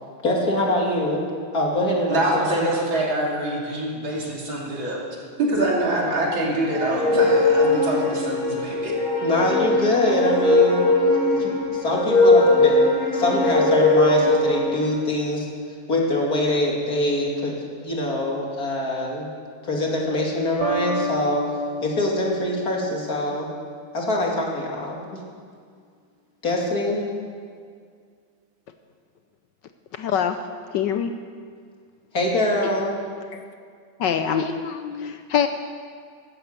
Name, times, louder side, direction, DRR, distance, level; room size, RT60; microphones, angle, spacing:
voice 1, 0.2-1.3 1.5-2.6 9.2-12.9 13.1-15.5 15.9-17.5 17.8-19.3 19.6-21.5 21.8-23.5 23.9-25.2 26.4-27.0 32.1-33.0, left 1 dB, 45° left, -2 dB, 2.9 m, -24 dB
voice 2, 2.1-5.0 5.4-8.9, right 1 dB, 75° right, -3 dB, 3.7 m, -25 dB
sound 1, 6.7-14.9, left 2 dB, 85° left, 4.9 m, -20 dB
sound 2, 20.6-23.4, equal, 60° right, 1.8 m, -31 dB
voice 3, 29.9-30.4 30.7-31.1 33.3-33.4 34.0-35.5, left 8 dB, 70° left, 8 dB, 1.3 m, -24 dB
15.0 x 13.0 x 6.7 m, 2.1 s
omnidirectional pair, 2.2 m